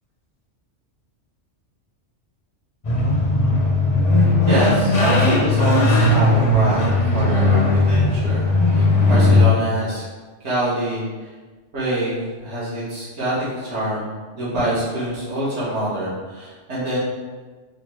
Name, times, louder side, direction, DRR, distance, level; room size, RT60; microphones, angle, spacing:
sound 1, 2.8-9.4, left 2 dB, 40° left, 0.5 m, -17 dB
voice 1, 4.5-8.4 8.7-10.0 10.4-11.0 11.7-17.0, right 1 dB, 65° right, -8 dB, 1.6 m, -25 dB
5.8 x 2.2 x 3.0 m, 1.3 s
omnidirectional pair, 1.3 m